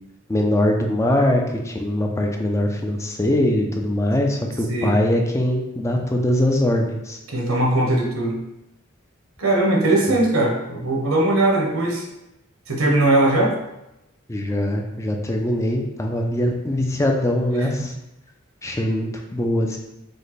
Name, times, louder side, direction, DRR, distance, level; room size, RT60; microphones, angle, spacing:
voice 1, 0.3-7.2 14.3-17.9 18.6-19.8, left 1 dB, 15° left, 2 dB, 0.4 m, -22 dB
voice 2, 4.7-5.0 7.3-8.4 9.4-12.1 12.7-13.5, right 2 dB, 80° right, 0 dB, 1.0 m, -19 dB
5.1 x 2.2 x 4.0 m, 0.90 s
head